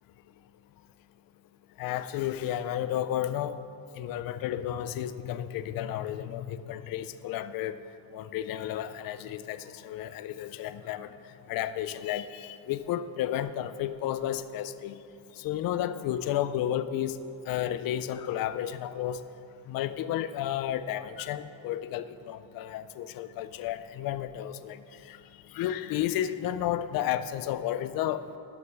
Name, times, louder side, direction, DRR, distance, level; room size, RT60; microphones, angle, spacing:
voice 1, 1.8-3.6 4.0-7.8 8.1-11.1 11.5-15.0 15.4-17.2 17.5-19.2 19.7-24.8 25.1-25.2 25.5-28.3, left 11 dB, 50° left, 13 dB, 0.5 m, -32 dB
11.5 x 6.6 x 5.9 m, 2.6 s
cardioid pair, 170°, 45 cm